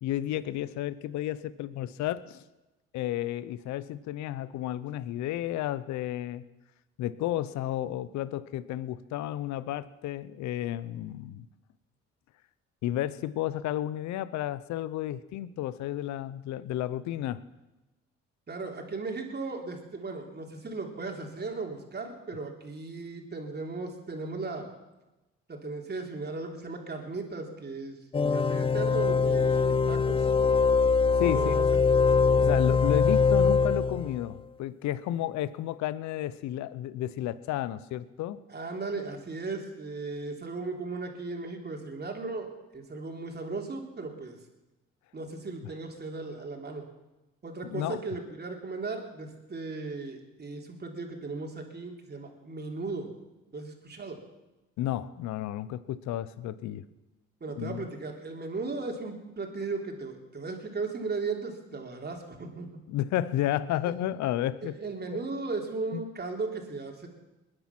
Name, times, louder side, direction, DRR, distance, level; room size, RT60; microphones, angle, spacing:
voice 1, 0.0-2.4 2.9-6.4 7.0-11.5 12.8-17.4 31.2-31.5 32.4-38.4 47.6-48.0 54.8-56.8 57.6-57.8 62.9-64.8 65.1-65.2 65.9-66.0, left 13 dB, 70° left, 17 dB, 0.8 m, -32 dB
voice 2, 18.5-24.7 25.5-28.0 28.3-30.3 31.3-31.7 38.5-44.4 45.1-46.8 47.4-53.1 53.5-54.2 57.4-62.7 64.6-67.1, right 3 dB, 35° right, 2 dB, 3.5 m, -36 dB
sound 1, 28.1-34.3, left 5 dB, 20° left, 0.5 m, -23 dB
21.5 x 9.8 x 6.1 m, 1.0 s
supercardioid pair, 65°, 29 cm